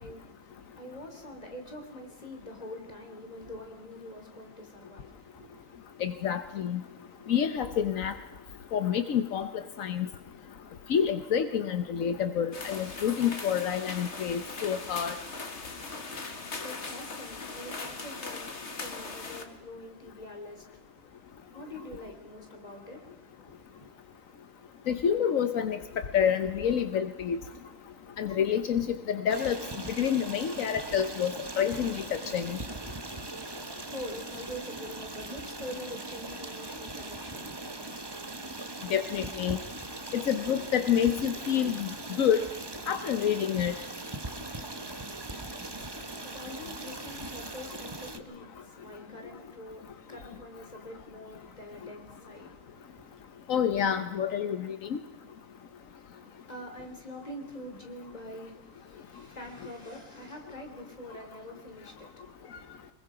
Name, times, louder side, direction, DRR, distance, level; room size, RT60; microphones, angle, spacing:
voice 1, 0.0-5.8 16.6-23.9 33.5-38.2 46.0-53.3 56.2-62.9, left 1 dB, 30° left, 4 dB, 3.4 m, -45 dB
voice 2, 6.0-6.8 7.3-8.1 8.7-10.1 10.9-15.1 24.9-25.8 26.1-27.4 28.2-29.6 30.0-32.0 32.3-32.6 38.9-39.6 40.1-41.9 42.2-42.4 42.9-43.7 53.5-55.0, left 8 dB, 80° left, 10 dB, 1.3 m, -28 dB
sound 1, 12.5-19.4, left 3 dB, 60° left, 2.1 m, -40 dB
Stream, 29.3-48.2, right 2 dB, 20° right, 1.0 m, -40 dB
25.0 x 21.5 x 5.0 m, 1.2 s
omnidirectional pair, 1.4 m